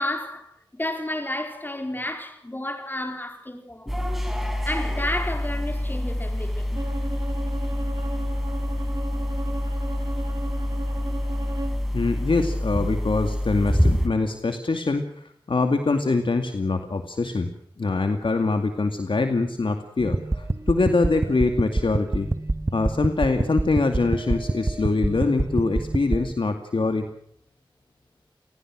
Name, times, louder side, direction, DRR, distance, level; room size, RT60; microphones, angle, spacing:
voice 1, 0.0-4.2 4.6-6.8, left 1 dB, 20° left, 4.7 m, -31 dB
sound 1, 3.9-14.1, left 1 dB, ahead, 5.9 m, -26 dB
Bowed string instrument, 6.7-11.8, right 2 dB, 50° right, 6.1 m, -36 dB
voice 2, 11.9-17.5 17.8-22.3 22.7-27.1, left 3 dB, 70° left, 2.3 m, -24 dB
sound 2, 20.0-26.3, right 2 dB, 30° right, 1.6 m, -27 dB
29.0 x 20.0 x 6.2 m
wide cardioid pair, 80°, 9 cm